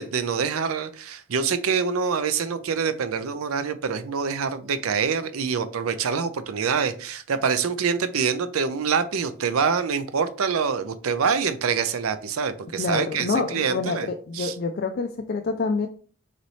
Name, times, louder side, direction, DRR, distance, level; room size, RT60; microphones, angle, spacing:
voice 1, 0.0-14.5, right 6 dB, 80° right, 12 dB, 0.5 m, -25 dB
voice 2, 12.7-15.9, left 4 dB, 50° left, 4 dB, 0.3 m, -27 dB
4.0 x 3.2 x 4.1 m, 0.42 s
head